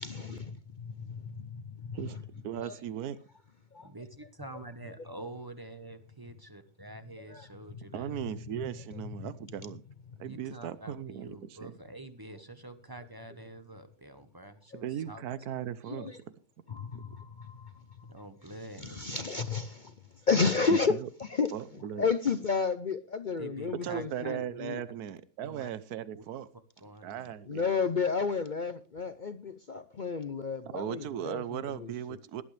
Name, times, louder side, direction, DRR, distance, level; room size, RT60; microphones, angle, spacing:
voice 1, 0.0-2.0 2.6-2.7 7.3-7.4 15.9-16.2 16.7-18.1 18.8-19.9 20.3-20.9 21.2-21.5 22.0-24.8 27.5-31.9, left 5 dB, 55° left, 0.5 m, -32 dB
voice 2, 2.4-3.2 7.9-9.8 10.2-11.7 14.8-16.1 16.9-17.0 20.7-21.1 21.5-22.1 23.8-26.5 27.0-27.6 30.7-32.4, right 10 dB, 70° right, 1.3 m, -37 dB
voice 3, 3.8-8.1 10.2-15.2 16.0-16.1 18.1-19.2 23.4-24.4 25.4-25.7 26.1-26.2 26.8-27.3, right 2 dB, 15° right, 0.9 m, -46 dB
18.0 x 11.5 x 3.3 m
omnidirectional pair, 1.7 m